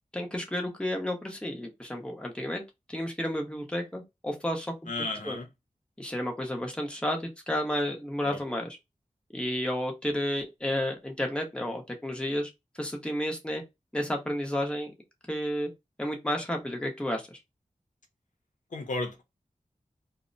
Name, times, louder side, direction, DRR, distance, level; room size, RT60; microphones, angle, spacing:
voice 1, 0.1-2.6 2.9-4.7 5.2-5.4 6.0-8.8 9.3-12.5 12.8-13.6 13.9-14.9 15.3-15.7 16.0-17.4, equal, 5° left, 0.8 m, -31 dB
voice 2, 4.9-5.5 8.2-8.4 18.7-19.2, left 2 dB, 70° left, 0.7 m, -33 dB
2.1 x 2.1 x 3.8 m
wide cardioid pair, 65°, 13 cm